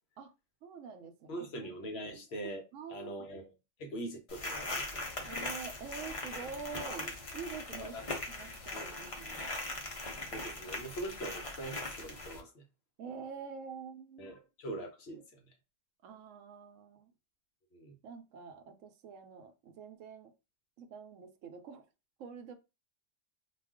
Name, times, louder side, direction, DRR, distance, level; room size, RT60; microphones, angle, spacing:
voice 1, 0.6-2.1 2.7-3.2 5.3-9.5 13.0-14.3 14.7-14.8 15.1-15.2 16.0-17.1 18.0-20.3 20.8-21.8 22.2-22.6, right 5 dB, 80° right, 0.9 m, -46 dB
voice 2, 1.3-2.6 2.9-3.5 3.8-5.3 7.8-8.0 8.7-9.0 10.3-12.6 14.2-15.4 17.7-18.0, right 1 dB, 60° left, 0.9 m, -42 dB
sound 1, 4.3-12.4, left 2 dB, 40° left, 0.5 m, -40 dB
2.4 x 2.3 x 3.5 m
omnidirectional pair, 1.3 m